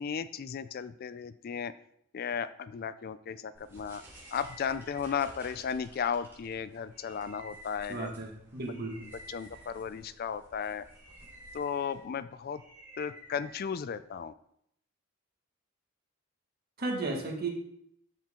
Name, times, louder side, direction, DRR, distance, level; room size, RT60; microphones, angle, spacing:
voice 1, 0.0-1.7 2.1-4.0 4.3-8.1 9.0-10.9 11.5-12.6 13.0-14.3, left 7 dB, 45° left, 15 dB, 0.3 m, -35 dB
sound 1, 3.5-14.2, right 1 dB, 10° right, 3.4 m, -53 dB
voice 2, 7.9-9.0 16.8-17.5, right 3 dB, 50° right, 0 dB, 1.8 m, -34 dB
13.0 x 4.5 x 3.8 m, 0.73 s
head